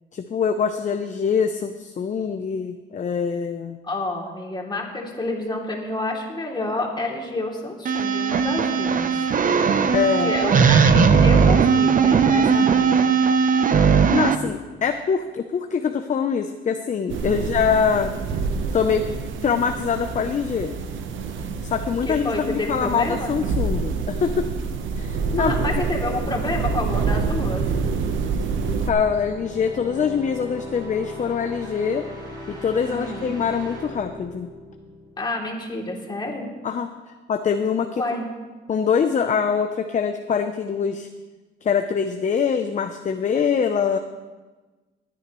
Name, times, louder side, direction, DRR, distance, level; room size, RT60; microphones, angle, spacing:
voice 1, 0.1-3.8 9.9-10.3 14.1-18.1 18.7-19.1 19.4-20.7 21.6-24.5 25.0-25.5 28.8-32.1 32.5-34.5 36.6-36.9 37.3-38.0 38.7-41.1 41.6-44.0, left 6 dB, 40° left, 7 dB, 0.7 m, -24 dB
voice 2, 3.8-9.1 10.2-13.2 22.0-23.3 25.4-27.6 32.9-33.3 35.2-36.5 38.0-38.3, left 2 dB, 20° left, -1 dB, 2.8 m, -29 dB
sound 1, 7.8-14.3, right 6 dB, 45° right, 0.8 m, -18 dB
sound 2, 17.1-28.9, right 4 dB, 75° right, 1.0 m, -27 dB
sound 3, 27.9-35.6, left 1 dB, 20° right, 4.3 m, -39 dB
19.5 x 9.8 x 3.1 m, 1.3 s
cardioid pair, 90°, 20 cm